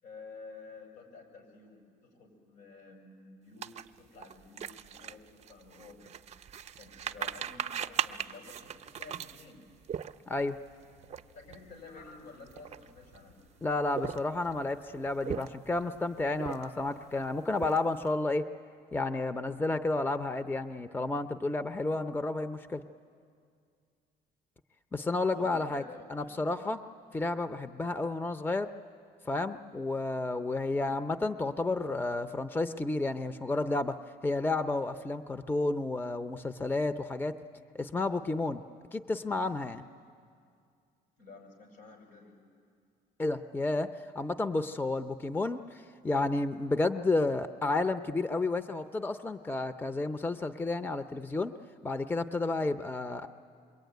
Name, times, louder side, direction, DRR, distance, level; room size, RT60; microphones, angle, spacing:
voice 1, 0.0-6.0 6.7-9.7 11.3-13.4 25.0-26.8 41.2-42.4, left 3 dB, 85° left, 2 dB, 6.6 m, -51 dB
sound 1, 3.6-10.5 11.0-11.2 11.5-11.7 12.3-13.2 13.8-14.5 15.1-15.8 16.3-16.9 17.3-18.1, right 8 dB, 40° right, 0.6 m, -38 dB
voice 2, 10.3-10.6 13.6-18.5 18.9-22.8 24.9-25.8 26.1-26.8 27.1-28.7 29.3-34.0 34.2-37.4 37.7-38.6 38.9-39.9 43.2-51.5 51.8-53.3, left 2 dB, 10° left, 9 dB, 0.7 m, -31 dB
Fowl, 10.4-17.7, left 3 dB, 65° left, 4.3 m, -59 dB
26.5 x 23.0 x 9.3 m, 2.3 s
cardioid pair, 110°, 17 cm